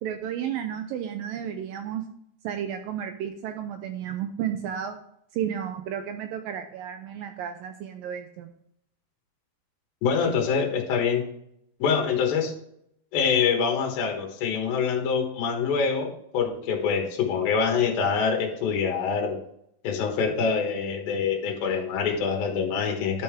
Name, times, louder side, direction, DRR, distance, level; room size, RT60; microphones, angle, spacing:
voice 1, 0.0-2.0 2.4-5.0 5.3-8.5, right 9 dB, 80° right, 7 dB, 2.1 m, -32 dB
voice 2, 10.0-11.2 11.8-12.5 13.1-19.4 19.8-23.2, left 6 dB, 70° left, 1 dB, 3.1 m, -25 dB
11.0 x 5.5 x 3.5 m, 0.73 s
omnidirectional pair, 4.6 m